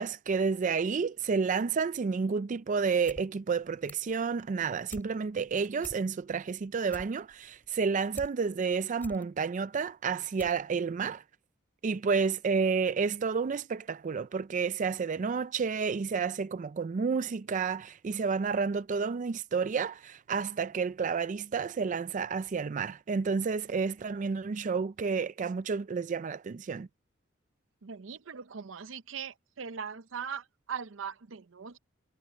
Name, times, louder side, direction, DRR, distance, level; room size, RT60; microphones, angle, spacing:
voice 1, 0.0-11.2 11.8-26.9, right 5 dB, 40° right, 0.4 m, -30 dB
sound 1, 3.1-3.3 3.5-4.2 4.5-5.1 5.5-5.6 5.8-6.4 6.7-8.3 8.7-9.2 9.8-9.9 10.4-10.6 10.9-11.0, left 1 dB, 10° left, 3.8 m, -47 dB
voice 2, 27.8-31.8, right 7 dB, 80° right, 0.7 m, -40 dB
head